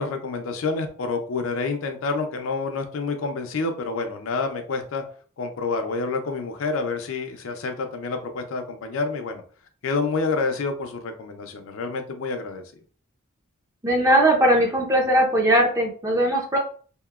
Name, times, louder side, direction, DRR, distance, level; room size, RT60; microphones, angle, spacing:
voice 1, 0.0-5.0 5.4-9.4 9.8-12.6, left 4 dB, 65° left, 5 dB, 0.4 m, -28 dB
voice 2, 13.8-16.6, right 1 dB, 15° right, 0 dB, 0.5 m, -19 dB
2.9 x 2.1 x 2.3 m, 0.42 s
head